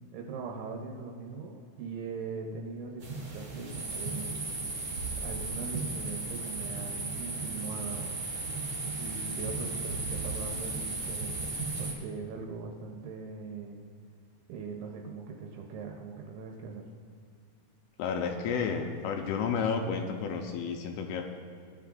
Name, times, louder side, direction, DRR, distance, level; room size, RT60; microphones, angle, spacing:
voice 1, 0.0-4.4 5.2-8.1 9.0-13.8 14.5-16.9, right 4 dB, 80° right, 1 dB, 2.8 m, -41 dB
sound 1, 3.0-11.9, right 3 dB, 55° right, 1.5 m, -35 dB
voice 2, 18.0-21.2, left 6 dB, 85° left, 3 dB, 3.0 m, -31 dB
17.5 x 9.8 x 2.5 m, 2.3 s
omnidirectional pair, 5.9 m